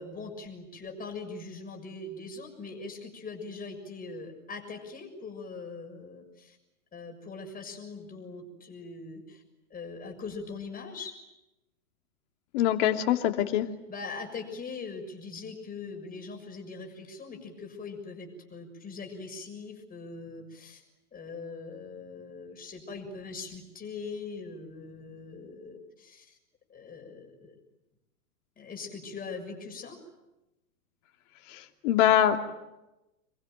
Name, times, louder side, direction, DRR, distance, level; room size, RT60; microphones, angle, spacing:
voice 1, 0.0-6.6 6.9-9.4 9.7-11.1 13.9-20.8 21.1-26.4 26.7-27.5 28.6-30.0, left 4 dB, 20° left, 3 dB, 6.8 m, -41 dB
voice 2, 12.5-13.6 31.5-32.4, left 11 dB, 50° left, 5 dB, 3.0 m, -24 dB
27.0 x 23.0 x 9.3 m, 0.97 s
hypercardioid pair, 120°, 46 cm